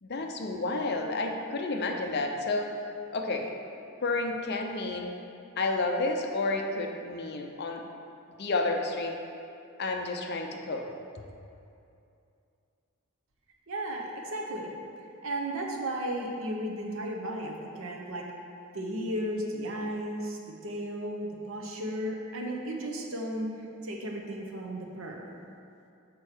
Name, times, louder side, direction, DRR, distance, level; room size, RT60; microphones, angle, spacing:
voice 1, 0.0-2.7 3.1-3.5 4.0-5.1 5.6-7.9 8.4-9.2 9.8-10.8, left 3 dB, 45° left, 3 dB, 0.6 m, -30 dB
voice 2, 13.7-14.7 15.2-18.3 18.7-25.3, right 1 dB, 65° right, 0 dB, 0.9 m, -34 dB
6.7 x 5.4 x 4.5 m, 2.6 s
head